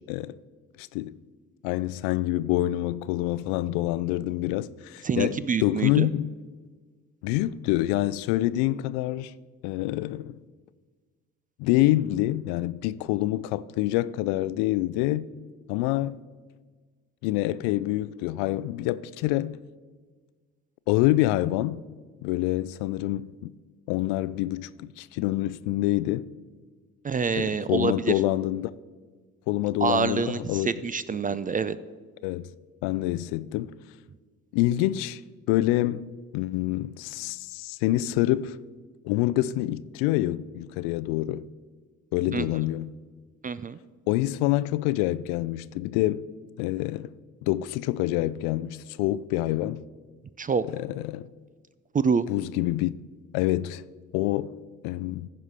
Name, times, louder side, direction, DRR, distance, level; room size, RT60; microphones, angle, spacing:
voice 1, 0.8-1.2 1.6-6.3 7.2-9.3 9.6-10.3 11.6-15.3 15.7-16.2 17.2-19.6 20.9-21.8 22.2-23.5 23.9-26.3 27.4-28.7 29.5-30.7 32.2-32.5 32.8-33.7 34.5-35.2 35.5-38.6 39.0-41.4 42.1-42.9 44.1-46.3 46.6-47.1 47.4-49.8 50.7-51.3 52.3-52.9 53.3-53.8 54.1-54.6 54.8-55.3, left 16 dB, 70° left, 0.5 m, -26 dB
voice 2, 5.0-6.1 27.0-28.1 29.8-31.8 42.3-42.5 43.4-43.8 50.4-50.6 51.9-52.3, right 5 dB, 20° right, 0.4 m, -26 dB
14.5 x 5.0 x 5.6 m
hypercardioid pair, 55°, 41 cm